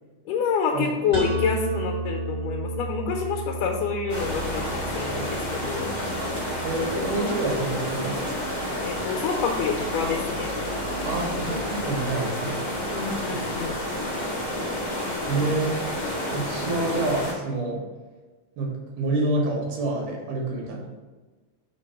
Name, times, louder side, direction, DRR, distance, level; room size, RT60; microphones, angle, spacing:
voice 1, 0.3-5.9 6.9-7.5 8.8-10.5 12.9-13.8, left 5 dB, 90° left, 1 dB, 2.2 m, -28 dB
sound 1, 1.1-6.9, right 1 dB, 20° right, 1.3 m, -32 dB
sound 2, 4.1-17.3, left 1 dB, 55° left, 0.4 m, -30 dB
voice 2, 6.6-8.6 11.0-12.7 13.3-13.4 15.3-15.8 16.3-17.8 18.6-20.9, right 2 dB, 75° right, -1 dB, 2.6 m, -28 dB
5.1 x 3.7 x 5.5 m, 1.3 s
omnidirectional pair, 3.7 m